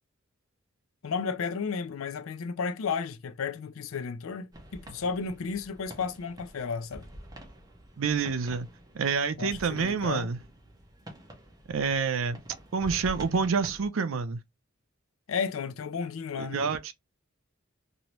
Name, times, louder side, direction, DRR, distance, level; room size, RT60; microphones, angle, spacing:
voice 1, 1.0-7.1 9.4-10.3 15.3-16.6, left 5 dB, 90° left, 0.4 m, -33 dB
sound 1, 4.5-13.9, equal, 20° right, 0.8 m, -47 dB
voice 2, 8.0-8.7 8.9-10.4 11.7-12.4 12.7-14.4 16.4-16.9, right 5 dB, 80° right, 0.5 m, -28 dB
2.9 x 2.6 x 3.0 m
head